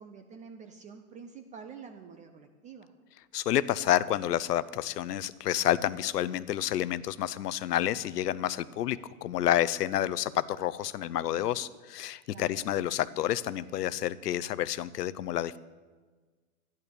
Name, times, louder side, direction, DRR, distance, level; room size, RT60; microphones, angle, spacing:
voice 1, 0.0-2.9 12.3-12.6, right 6 dB, 15° right, 6 dB, 0.5 m, -47 dB
voice 2, 3.3-15.6, left 12 dB, 85° left, 17 dB, 0.8 m, -29 dB
12.5 x 10.5 x 6.7 m, 1.4 s
hypercardioid pair, 135°, 47 cm